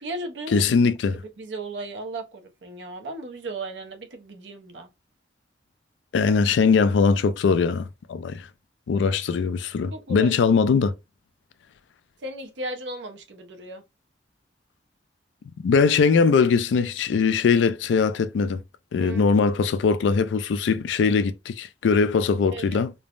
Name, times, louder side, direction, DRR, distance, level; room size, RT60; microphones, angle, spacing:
voice 1, 0.0-0.6 1.1-4.9 9.9-10.3 12.2-13.8 19.0-19.3 22.5-22.8, right 2 dB, 85° right, 0.7 m, -36 dB
voice 2, 0.5-1.2 6.1-8.5 8.9-10.9 15.6-18.6 18.9-22.9, left 5 dB, 90° left, 0.3 m, -21 dB
3.2 x 2.0 x 2.4 m
head